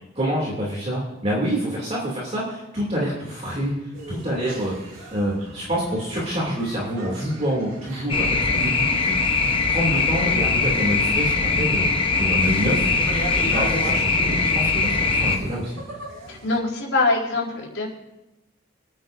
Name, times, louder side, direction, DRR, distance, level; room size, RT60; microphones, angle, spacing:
voice 1, 0.1-3.7 4.1-4.7 5.1-9.1 9.7-11.9 12.1-12.9 13.3-15.8, equal, 30° right, -5 dB, 2.8 m, -26 dB
sound 1, 3.9-16.6, right 2 dB, 85° right, 3.5 m, -39 dB
sound 2, 8.1-15.4, left 4 dB, 25° left, 1.0 m, -21 dB
voice 2, 16.3-17.9, left 3 dB, 75° left, -4 dB, 4.4 m, -23 dB
27.5 x 9.6 x 2.7 m, 1.0 s
head